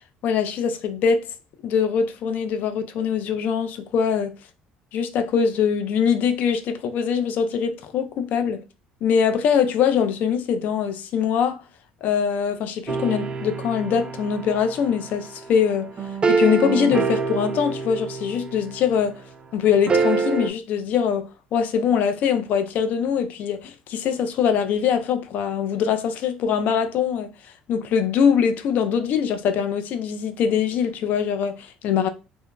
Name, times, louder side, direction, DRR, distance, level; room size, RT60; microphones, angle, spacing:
voice 1, 0.2-1.3 1.6-4.3 4.9-8.6 9.0-11.6 12.0-15.9 16.3-19.2 19.5-27.3 27.7-32.1, left 7 dB, 60° left, 0.4 m, -22 dB
sound 1, 12.9-19.1 19.9-20.5, right 4 dB, 30° right, 0.4 m, -26 dB
2.7 x 2.5 x 2.2 m
cardioid pair, 105°, 3 cm